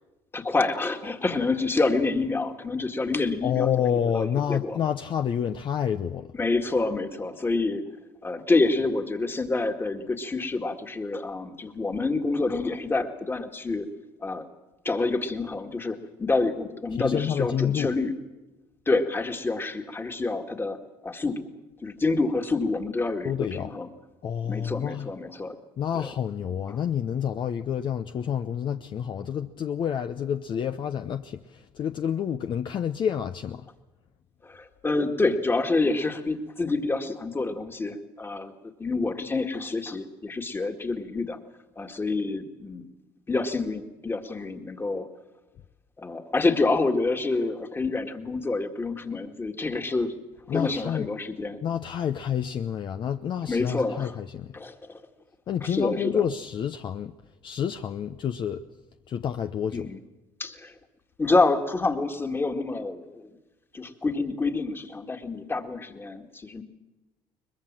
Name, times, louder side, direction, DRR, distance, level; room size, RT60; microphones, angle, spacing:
voice 1, 0.3-3.7 4.1-4.8 6.3-7.8 8.2-13.9 14.2-14.5 14.9-18.1 18.9-21.5 21.8-23.3 23.6-23.9 24.4-25.6 25.9-26.1 26.7-26.8 34.4-38.5 38.8-41.4 41.8-42.8 43.3-45.1 46.0-50.2 50.5-51.6 53.4-54.1 54.5-55.0 55.6-56.2 59.7-60.0 60.4-60.7 61.2-63.3 63.7-66.6, left 3 dB, 20° left, 2.0 m, -27 dB
voice 2, 3.4-6.3 17.0-17.9 23.2-23.7 24.2-25.1 25.8-33.7 50.5-51.1 51.6-54.5 55.5-57.1 57.4-58.6 59.1-59.9, left 8 dB, 50° left, 0.7 m, -28 dB
22.0 x 21.0 x 7.5 m
supercardioid pair, 90°, 10 cm